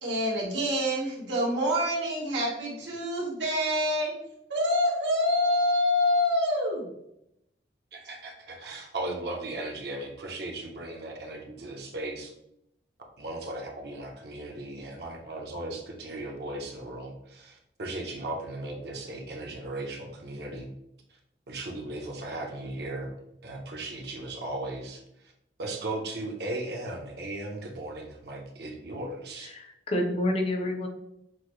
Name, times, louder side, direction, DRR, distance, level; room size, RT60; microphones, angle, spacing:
voice 1, 0.0-4.1 4.5-6.9, left 1 dB, 85° right, -4 dB, 1.5 m, -26 dB
voice 2, 7.9-12.3 13.2-20.7 21.5-23.1 23.4-25.3 25.6-29.5, right 2 dB, 60° right, 1 dB, 0.8 m, -37 dB
voice 3, 29.4-30.9, left 1 dB, 30° left, 3 dB, 0.6 m, -28 dB
6.2 x 2.1 x 3.1 m, 0.81 s
head